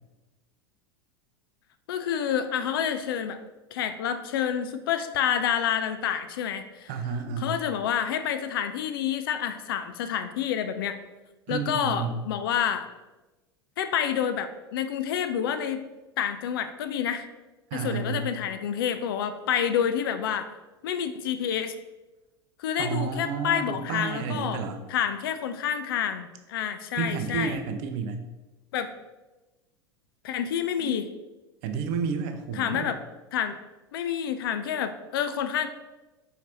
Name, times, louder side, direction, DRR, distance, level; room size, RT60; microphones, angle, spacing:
voice 1, 1.9-3.4 3.7-6.9 7.4-11.0 11.5-12.9 13.8-15.8 16.2-17.3 17.7-20.5 20.8-21.7 22.6-24.6 24.9-27.6 28.7-28.9 30.2-31.1 32.6-33.0 33.3-33.6 33.9-35.7, left 8 dB, 60° left, 10 dB, 0.4 m, -28 dB
voice 2, 6.9-7.6 11.5-12.2 17.7-18.3 22.8-24.8 27.0-28.3 30.8-31.0 31.6-32.9, right 5 dB, 45° right, 7 dB, 0.5 m, -31 dB
4.4 x 3.9 x 2.9 m, 1.1 s
figure-of-eight pair, 85°, 14 cm